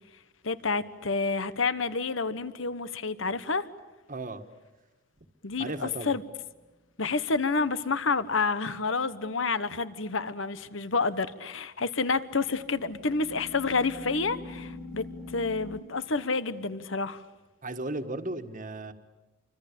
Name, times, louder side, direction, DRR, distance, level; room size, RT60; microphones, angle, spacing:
voice 1, 0.4-3.7 5.4-6.2 7.0-17.2, left 4 dB, 70° left, 1.2 m, -29 dB
voice 2, 4.1-4.4 5.6-6.2 17.6-18.9, right 2 dB, 40° right, 1.6 m, -35 dB
sound 1, 5.5-6.2 12.2-15.8, left 2 dB, 5° right, 2.2 m, -44 dB
28.0 x 24.5 x 8.6 m
head